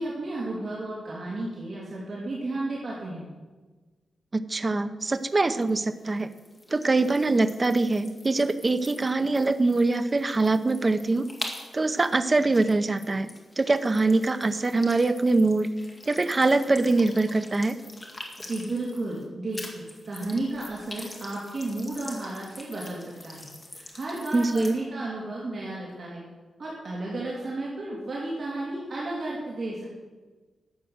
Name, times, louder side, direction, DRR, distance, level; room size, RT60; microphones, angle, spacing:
voice 1, 0.0-3.3 18.4-26.2 26.6-29.9, right 2 dB, 45° right, -5 dB, 2.9 m, -33 dB
voice 2, 4.3-6.3 6.7-11.3 11.7-13.3 13.6-15.7 16.1-17.8 24.3-24.7, right 3 dB, 25° right, 10 dB, 0.7 m, -23 dB
sound 1, 5.0-19.3 19.5-24.8, left 2 dB, 20° left, 2.0 m, -45 dB
12.5 x 7.8 x 7.8 m, 1.3 s
wide cardioid pair, 150°, 0 cm